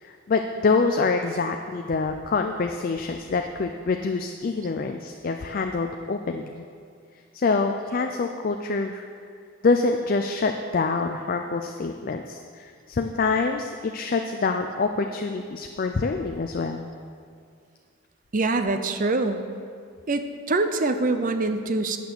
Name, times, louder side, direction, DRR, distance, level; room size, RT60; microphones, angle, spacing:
voice 1, 0.0-6.6 7.3-9.0 9.6-16.9, left 4 dB, 40° left, 5 dB, 0.4 m, -26 dB
voice 2, 18.3-19.4 20.1-22.0, right 3 dB, 40° right, 8 dB, 0.5 m, -24 dB
9.3 x 6.0 x 6.9 m, 2.2 s
head